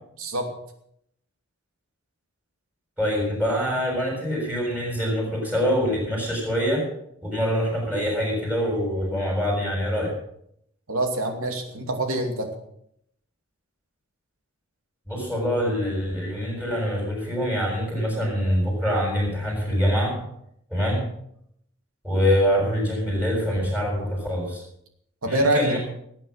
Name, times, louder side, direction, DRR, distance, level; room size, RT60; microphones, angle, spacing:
voice 1, 0.2-0.5 10.9-12.5 25.2-25.8, right 1 dB, 75° right, 4 dB, 2.7 m, -25 dB
voice 2, 3.0-6.9 7.2-10.2 15.1-20.3 20.7-21.1 22.0-24.6 25.2-25.8, equal, 5° right, -2 dB, 6.7 m, -24 dB
18.0 x 9.2 x 6.3 m, 0.72 s
head